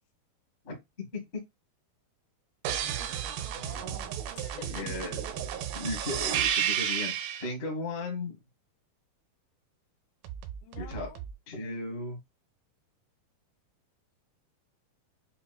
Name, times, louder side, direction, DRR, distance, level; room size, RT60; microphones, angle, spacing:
voice 1, 0.6-1.2 4.7-5.2 5.7-8.4 10.8-11.1 11.5-12.2, left 2 dB, 60° left, 0.7 m, -36 dB
sound 1, 2.6-7.5 10.2-11.3, right 10 dB, 85° right, 2.4 m, -32 dB
voice 2, 3.5-4.9 10.6-11.2, left 7 dB, 80° left, 2.7 m, -48 dB
6.8 x 2.3 x 2.5 m
omnidirectional pair, 4.5 m